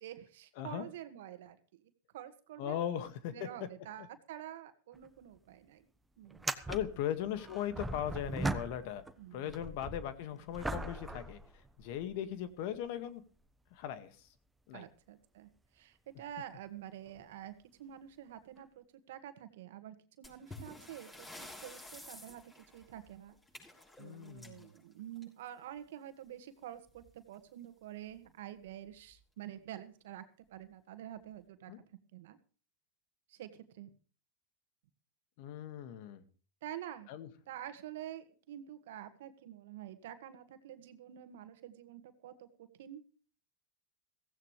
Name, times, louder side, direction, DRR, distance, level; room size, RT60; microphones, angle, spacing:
voice 1, 0.0-5.9 6.2-6.5 9.2-9.8 14.7-23.4 24.0-31.7 32.1-32.4 33.3-33.9 36.6-37.1 37.5-43.0, right 11 dB, 70° right, 10 dB, 1.8 m, -48 dB
voice 2, 2.6-3.3 6.7-9.0 9.3-11.4 11.8-13.2 13.7-14.1 14.7-14.8 24.0-24.7 31.7-31.8 35.4-36.2 37.1-37.3, left 10 dB, 60° left, 11 dB, 1.9 m, -38 dB
sound 1, 4.9-5.1 5.4-5.5 6.3-9.1 9.5-12.2 12.8-12.9 17.1-17.2 18.6-18.7, right 2 dB, 10° right, 1.2 m, -40 dB
sound 2, 20.2-25.6 26.9-27.0 27.3-27.4 28.1-28.2 28.9-29.1, left 2 dB, 15° left, 6.3 m, -52 dB
16.5 x 15.5 x 3.3 m, 0.38 s
hypercardioid pair, 100°, 0 cm